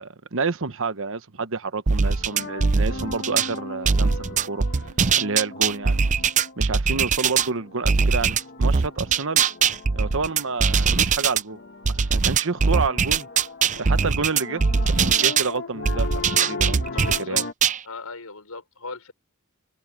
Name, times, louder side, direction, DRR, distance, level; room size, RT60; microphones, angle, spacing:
voice 1, 0.0-4.6 5.2-6.0 6.6-9.4 9.9-11.6 11.9-13.3 13.8-16.8 17.2-17.4, right 4 dB, 65° right, 1.1 m, -29 dB
sound 1, 1.9-3.5 3.8-7.5 7.8-11.4 11.8-15.5 15.8-17.8, right 5 dB, 35° right, 0.5 m, -21 dB
sound 2, 2.0-17.5, left 3 dB, 50° left, 1.5 m, -38 dB
voice 2, 16.9-17.5 17.8-19.1, left 3 dB, 90° left, 5.6 m, -37 dB
head